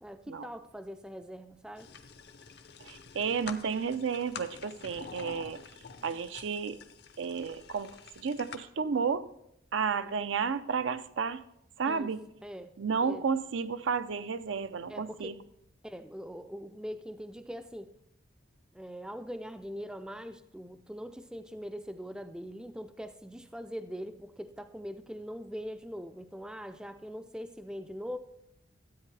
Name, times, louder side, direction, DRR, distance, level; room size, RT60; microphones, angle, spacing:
voice 1, 0.0-1.9 11.9-12.1 12.4-12.7 13.0-13.2 14.9-15.3 15.8-17.9 18.7-28.2, equal, 5° right, 0.3 m, -42 dB
sound 1, 1.8-8.6, left 5 dB, 55° left, 0.6 m, -47 dB
voice 2, 2.8-5.6 6.0-6.8 7.2-9.3 9.7-11.4 11.8-12.2 12.8-15.4, right 6 dB, 80° right, 0.5 m, -32 dB
13.0 x 8.5 x 3.3 m
head